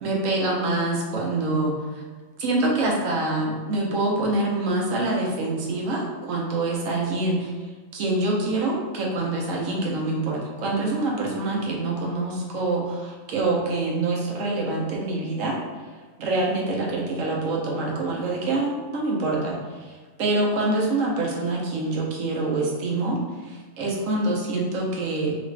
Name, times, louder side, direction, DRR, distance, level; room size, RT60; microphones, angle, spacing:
voice 1, 0.0-2.0 2.4-7.5 7.9-15.6 16.2-19.9 20.2-25.4, right 2 dB, 80° right, -2 dB, 1.1 m, -25 dB
3.0 x 2.5 x 3.1 m, 1.3 s
omnidirectional pair, 1.4 m